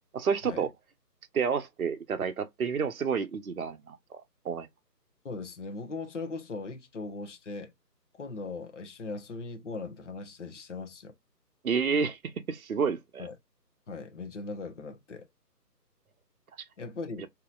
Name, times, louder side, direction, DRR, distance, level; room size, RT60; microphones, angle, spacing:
voice 1, 0.1-0.7 1.3-4.7 11.6-13.3, right 6 dB, 60° right, 0.7 m, -30 dB
voice 2, 5.2-7.7 8.2-11.1 13.2-13.4 13.9-15.3 16.8-17.3, left 3 dB, 45° left, 0.9 m, -39 dB
3.9 x 2.8 x 2.3 m
figure-of-eight pair, 155°, 50 cm